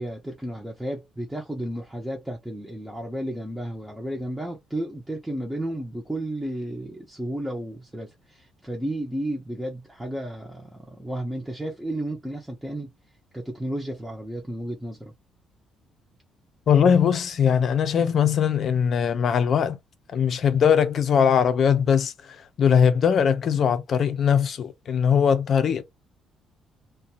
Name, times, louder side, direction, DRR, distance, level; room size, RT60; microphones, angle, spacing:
voice 1, 0.0-12.9 13.3-15.1, right 1 dB, 5° right, 0.6 m, -33 dB
voice 2, 16.7-19.8 20.1-22.1 22.6-25.8, left 7 dB, 50° left, 0.5 m, -20 dB
2.5 x 2.3 x 2.8 m
cardioid pair, 130°, 0 cm